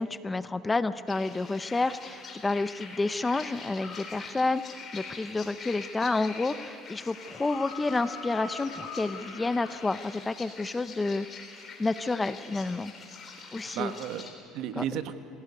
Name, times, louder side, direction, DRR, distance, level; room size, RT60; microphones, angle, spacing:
voice 1, 0.0-11.3 11.8-12.9 13.5-13.9 14.8-14.9, left 3 dB, 15° left, 13 dB, 0.5 m, -30 dB
sound 1, 1.1-14.3, left 4 dB, 30° left, 3.6 m, -45 dB
sound 2, 6.9-10.1 11.9-12.0, left 4 dB, 80° left, 3.9 m, -42 dB
voice 2, 13.4-15.1, right 10 dB, 65° right, 9 dB, 1.3 m, -35 dB
26.0 x 17.0 x 9.5 m, 2.7 s
cardioid pair, 145°, 0 cm